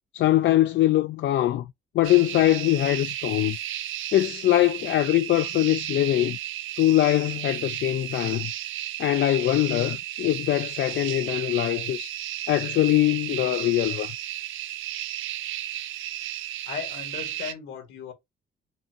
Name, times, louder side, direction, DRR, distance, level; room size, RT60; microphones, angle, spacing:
voice 1, 0.1-1.7 1.9-3.6 4.1-6.4 6.8-8.5 9.0-12.1 12.5-14.1, left 14 dB, 65° left, 0.4 m, -22 dB
Insects at night, 2.0-17.5, right 13 dB, 80° right, 0.5 m, -33 dB
voice 2, 16.7-18.1, left 7 dB, 85° left, 1.9 m, -36 dB
5.4 x 2.4 x 2.8 m
cardioid pair, 90°, 20 cm